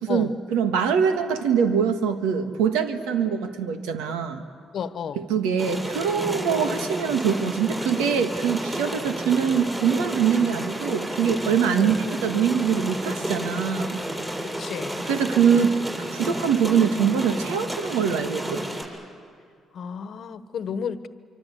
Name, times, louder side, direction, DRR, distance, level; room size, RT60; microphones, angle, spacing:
voice 1, 0.0-4.4 5.2-14.0 15.1-18.6, right 7 dB, 85° right, 8 dB, 1.6 m, -23 dB
voice 2, 4.7-5.2 6.5-6.7 11.7-11.9 14.6-14.9 19.7-21.1, left 7 dB, 60° left, 13 dB, 1.2 m, -32 dB
sound 1, 5.6-18.8, right 1 dB, 20° right, 7.5 m, -31 dB
25.0 x 24.5 x 8.5 m, 2.2 s
supercardioid pair, 60°, 0 cm